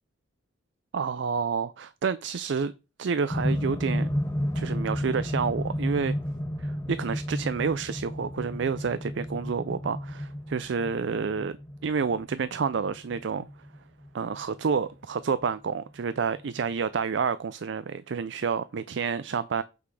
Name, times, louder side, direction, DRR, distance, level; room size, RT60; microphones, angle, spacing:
voice 1, 0.9-2.7 3.0-4.1 4.5-6.2 6.6-11.6 11.8-13.5 14.1-19.6, right 5 dB, 65° right, 0.4 m, -29 dB
sound 1, 3.3-15.4 16.4-16.5, equal, 15° left, 0.7 m, -32 dB
8.5 x 4.1 x 4.7 m
head